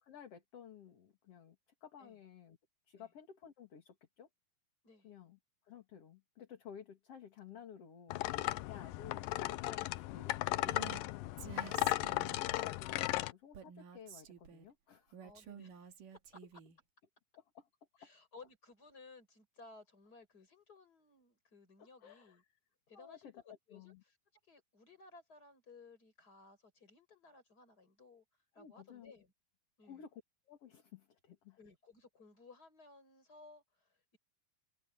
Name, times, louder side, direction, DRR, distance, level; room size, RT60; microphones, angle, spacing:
voice 1, 0.0-1.6 1.8-2.6 2.9-4.3 5.0-5.4 5.6-11.4 12.0-15.2 17.3-17.7 18.0-18.1 21.8-22.6 22.9-24.0 28.5-29.1 29.8-31.6, left 8 dB, 45° left, 2.8 m, -55 dB
sound 1, 8.1-13.3, left 18 dB, 80° left, 2.2 m, -36 dB
Female speech woman speaking, 10.7-11.0 11.4-12.6 13.5-14.7 15.1-16.8, right 8 dB, 65° right, 3.7 m, -51 dB
voice 2, 11.6-11.9 15.2-16.4 18.0-22.4 22.9-23.4 23.7-24.1 24.5-28.2 28.5-29.3 29.8-30.0 31.6-34.2, left 3 dB, 25° left, 6.0 m, -59 dB
open air
omnidirectional pair, 4.3 m